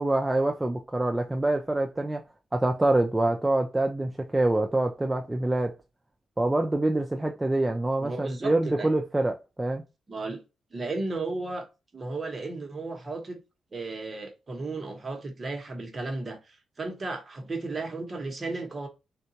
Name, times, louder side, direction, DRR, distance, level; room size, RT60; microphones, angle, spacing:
voice 1, 0.0-2.2 2.5-5.7 6.4-9.8, right 2 dB, 15° right, 0.3 m, -25 dB
voice 2, 8.0-8.9 10.1-10.4 10.7-11.7 11.9-13.4 13.7-18.9, right 3 dB, 35° right, 0.9 m, -34 dB
3.7 x 2.2 x 2.7 m
cardioid pair, 105°, 0 cm